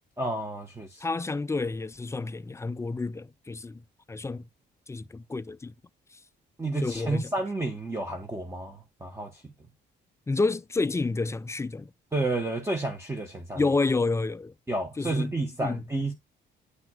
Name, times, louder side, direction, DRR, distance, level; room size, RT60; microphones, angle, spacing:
voice 1, 0.2-1.0 6.6-9.4 12.1-13.6 14.7-16.1, right 2 dB, 15° right, 1.2 m, -31 dB
voice 2, 1.0-3.8 4.1-4.5 4.9-5.7 6.8-7.3 10.3-11.9 13.6-14.5 15.0-15.3 15.6-15.8, left 3 dB, 15° left, 0.3 m, -29 dB
9.7 x 5.9 x 2.3 m
cardioid pair, 90°, 20 cm